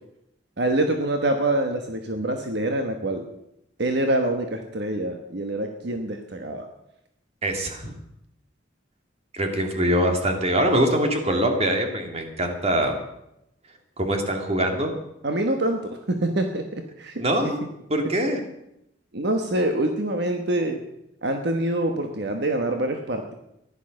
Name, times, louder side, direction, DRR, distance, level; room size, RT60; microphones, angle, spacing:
voice 1, 0.6-3.3 3.8-6.7 15.2-17.2 19.1-20.8 21.2-23.3, right 1 dB, 60° right, 5 dB, 1.3 m, -25 dB
voice 2, 7.4-7.9 9.3-13.0 14.0-14.9 17.2-17.6 17.9-18.4, right 1 dB, 35° right, 4 dB, 2.3 m, -23 dB
15.0 x 11.5 x 6.5 m, 0.81 s
head